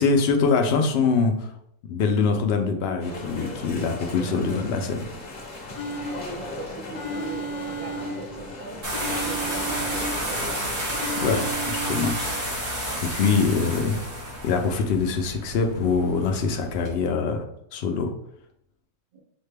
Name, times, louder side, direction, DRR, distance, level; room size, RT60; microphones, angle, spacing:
voice 1, 0.0-1.5 1.9-5.0 11.2-12.2 13.0-14.0 14.4-17.4 17.7-18.1, left 5 dB, 85° left, 4 dB, 0.5 m, -23 dB
sound 1, 3.0-11.5, left 2 dB, 45° left, 0.7 m, -38 dB
sound 2, 5.8-6.5 7.0-8.5 8.9-10.5 10.9-12.4, right 2 dB, 65° left, 1.1 m, -34 dB
voice 2, 6.1-10.8 19.1-19.2, right 2 dB, 60° right, -3 dB, 0.5 m, -40 dB
sound 3, 8.8-16.9, right 1 dB, 80° right, 1.9 m, -31 dB
6.3 x 2.2 x 3.2 m, 0.75 s
omnidirectional pair, 1.6 m